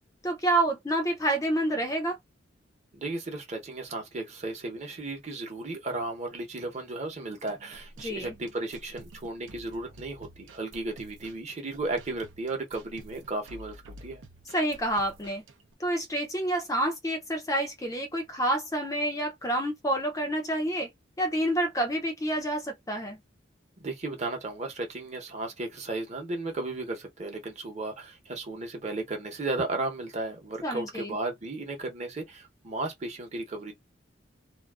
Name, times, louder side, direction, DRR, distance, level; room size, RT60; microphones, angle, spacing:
voice 1, 0.2-2.2 8.0-8.3 14.5-15.4 15.8-20.9 21.2-23.2 30.6-31.2, right 1 dB, 15° left, 0.4 m, -28 dB
voice 2, 2.9-14.2 23.8-33.7, right 2 dB, 35° right, 0.8 m, -35 dB
sound 1, 7.5-15.7, right 1 dB, 85° right, 0.5 m, -50 dB
2.4 x 2.3 x 2.3 m
head